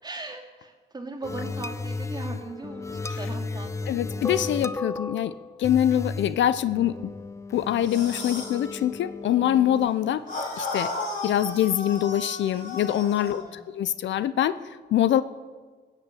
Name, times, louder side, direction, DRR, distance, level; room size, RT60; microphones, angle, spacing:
voice 1, 0.0-4.0 13.2-13.6, right 2 dB, 20° right, 0 dB, 3.0 m, -39 dB
sound 1, 1.2-9.9, left 3 dB, 15° left, 0.5 m, -34 dB
voice 2, 3.9-5.3 5.6-6.9 7.5-10.2 10.6-10.9 11.2-13.4 13.8-14.6 14.9-15.2, left 11 dB, 70° left, 14 dB, 0.7 m, -24 dB
sound 2, 7.8-8.6 10.3-13.4, left 2 dB, 40° left, 4.3 m, -34 dB
16.0 x 8.4 x 8.4 m, 1.5 s
cardioid pair, 90°, 20 cm